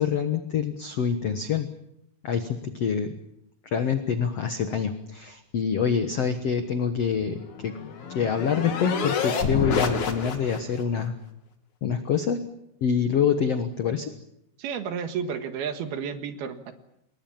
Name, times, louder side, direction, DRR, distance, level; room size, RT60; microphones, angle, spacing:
voice 1, 0.0-1.7 2.2-3.1 3.6-7.8 8.1-11.1 11.8-12.4 12.8-14.1, left 7 dB, 75° left, 8 dB, 1.4 m, -26 dB
sound 1, 7.2-10.8, left 5 dB, 50° left, 3.3 m, -29 dB
voice 2, 14.6-16.7, right 7 dB, 70° right, 8 dB, 3.4 m, -31 dB
28.5 x 21.0 x 7.3 m, 0.80 s
omnidirectional pair, 4.9 m